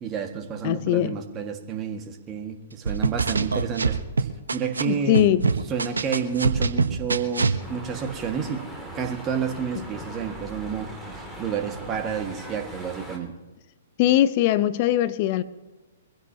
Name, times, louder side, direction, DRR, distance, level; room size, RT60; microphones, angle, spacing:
voice 1, 0.0-5.2 5.7-8.7 8.9-13.3, right 7 dB, 25° right, 1.9 m, -30 dB
voice 2, 0.6-1.2 4.8-5.5 9.8-9.9 14.0-15.4, left 13 dB, 40° left, 0.8 m, -21 dB
sound 1, 2.9-4.8 5.1-7.6, right 4 dB, 75° right, 1.1 m, -23 dB
sound 2, 7.6-13.2, right 1 dB, 5° left, 2.7 m, -39 dB
23.5 x 15.5 x 2.9 m
figure-of-eight pair, 120°, 0 cm